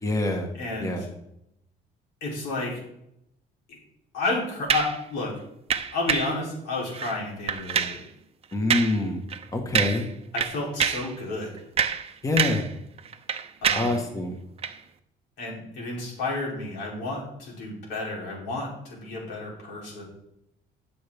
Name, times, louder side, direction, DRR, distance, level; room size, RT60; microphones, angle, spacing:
voice 1, 0.0-0.5 0.8-1.1 8.5-9.2 9.5-10.1 12.2-12.6 13.7-14.4, left 2 dB, 20° left, 3 dB, 1.4 m, -25 dB
voice 2, 0.6-1.1 2.2-2.8 3.7-3.8 4.1-5.3 5.9-8.0 10.3-11.6 13.6-14.0 15.4-20.0, left 2 dB, 90° left, -3 dB, 3.6 m, -31 dB
sound 1, 4.7-5.0 5.7-6.4 6.9-7.2 7.5-8.0 8.7-9.0 9.3-9.4 9.8-10.1 10.4-11.1 11.6-12.7 13.0-14.0 14.6-14.8, right 7 dB, 35° right, 0.7 m, -26 dB
12.5 x 7.0 x 3.6 m, 0.78 s
cardioid pair, 110°, 17 cm